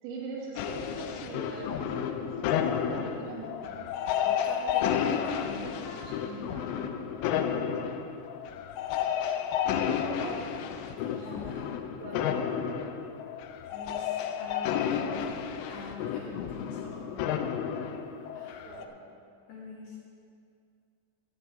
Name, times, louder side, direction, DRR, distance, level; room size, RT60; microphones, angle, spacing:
voice 1, 0.0-3.8 5.6-5.8 6.5-6.7 10.2-10.6 12.0-12.6 18.7-19.1, right 3 dB, 80° right, -2 dB, 4.3 m, -42 dB
sound 1, 0.6-18.8, left 8 dB, 85° left, 2.9 m, -31 dB
voice 2, 4.2-6.9 11.0-12.2 13.7-15.2 15.7-17.2 18.3-18.6 19.5-20.0, left 3 dB, 65° left, -4 dB, 2.7 m, -44 dB
17.0 x 8.4 x 3.7 m, 2.4 s
omnidirectional pair, 5.8 m